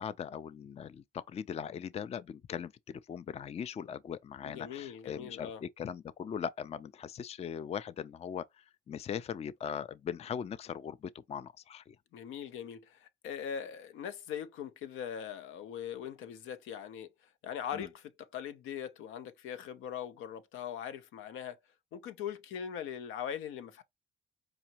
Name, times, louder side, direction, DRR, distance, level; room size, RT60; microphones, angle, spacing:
voice 1, 0.0-12.0 17.7-17.9, left 8 dB, 35° left, 0.4 m, -40 dB
voice 2, 4.4-5.6 12.1-17.1 17.4-21.6 21.9-23.8, left 8 dB, 90° left, 0.7 m, -41 dB
4.9 x 2.7 x 2.8 m
cardioid pair, 90°, 20 cm